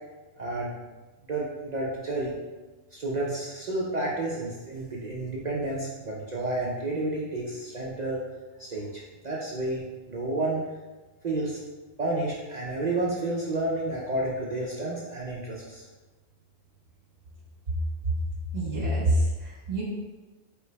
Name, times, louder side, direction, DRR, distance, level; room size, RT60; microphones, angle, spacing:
voice 1, 0.4-0.7 1.2-2.4 2.9-8.2 8.6-9.8 10.1-10.7 11.2-11.6 12.0-15.8, right 2 dB, 60° right, -4 dB, 0.4 m, -30 dB
voice 2, 18.5-19.8, right 1 dB, 75° right, -6 dB, 1.5 m, -26 dB
4.5 x 3.0 x 3.2 m, 1.2 s
omnidirectional pair, 1.4 m